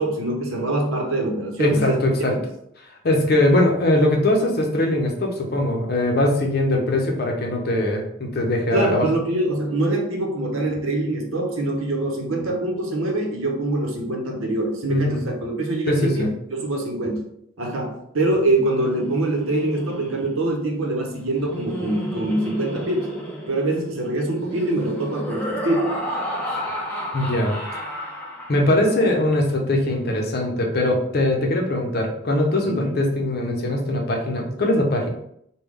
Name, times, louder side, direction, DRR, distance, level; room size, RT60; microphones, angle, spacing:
voice 1, 0.0-2.0 2.3-2.4 8.7-17.2 17.6-23.1 23.5-26.0 28.8-29.1 32.7-33.1, right 2 dB, 80° right, 1 dB, 0.8 m, -24 dB
voice 2, 1.6-2.3 3.0-9.1 14.9-15.2 15.9-16.3 27.1-27.8 28.5-35.1, left 1 dB, 50° left, 1 dB, 0.6 m, -21 dB
Laughter, 18.4-28.9, equal, 5° left, 0.5 m, -32 dB
3.3 x 2.2 x 3.6 m, 0.73 s
head